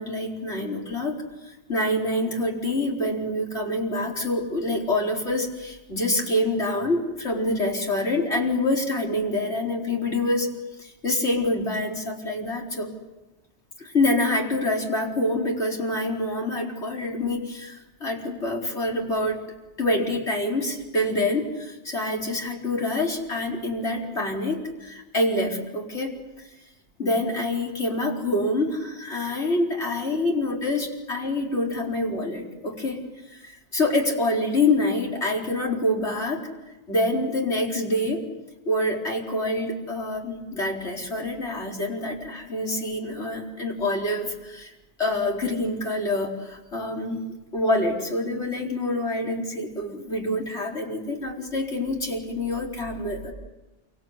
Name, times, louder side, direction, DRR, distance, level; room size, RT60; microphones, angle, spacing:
voice 1, 0.0-10.5 10.8-12.9 13.8-19.4 19.8-26.2 27.0-33.0 33.3-36.5 36.9-38.2 38.7-44.7 45.0-47.3 47.5-53.3, left 1 dB, 70° left, -1 dB, 4.9 m, -26 dB
28.0 x 25.0 x 8.2 m, 1.1 s
omnidirectional pair, 1.2 m